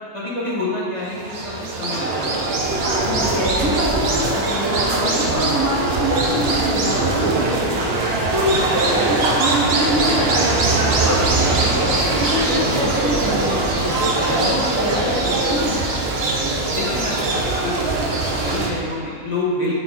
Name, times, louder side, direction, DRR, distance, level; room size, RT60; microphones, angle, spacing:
voice 1, 0.1-2.1 2.4-2.6 16.7-19.8, left 2 dB, 20° left, -7 dB, 1.5 m, -27 dB
sound 1, 1.0-18.7, right 2 dB, 55° right, 0.8 m, -21 dB
voice 2, 3.0-15.8, equal, 15° right, -7 dB, 0.6 m, -25 dB
sound 2, 10.6-18.9, left 1 dB, 40° left, 0.6 m, -38 dB
8.1 x 4.3 x 3.8 m, 2.4 s
omnidirectional pair, 1.5 m